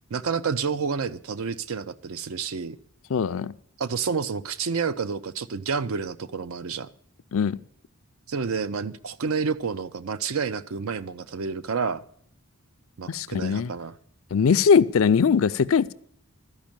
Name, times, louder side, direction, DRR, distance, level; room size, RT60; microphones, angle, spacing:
voice 1, 0.1-2.8 3.8-6.9 8.3-12.0 13.0-13.9, right 5 dB, 70° right, 0.5 m, -29 dB
voice 2, 3.1-3.5 7.3-7.6 13.1-13.7 14.3-15.9, left 6 dB, 65° left, 0.4 m, -21 dB
13.0 x 5.2 x 8.9 m
head